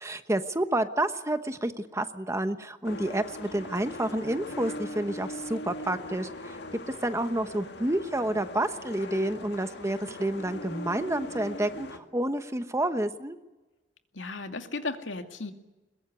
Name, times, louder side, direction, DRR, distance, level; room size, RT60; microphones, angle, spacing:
voice 1, 0.0-6.6 7.0-13.4, right 1 dB, 15° right, 10 dB, 1.1 m, -29 dB
sound 1, 2.8-12.0, left 1 dB, 65° left, 2.1 m, -40 dB
voice 2, 14.1-15.5, left 3 dB, 90° left, 6 dB, 2.3 m, -35 dB
22.0 x 21.5 x 9.6 m, 1.1 s
head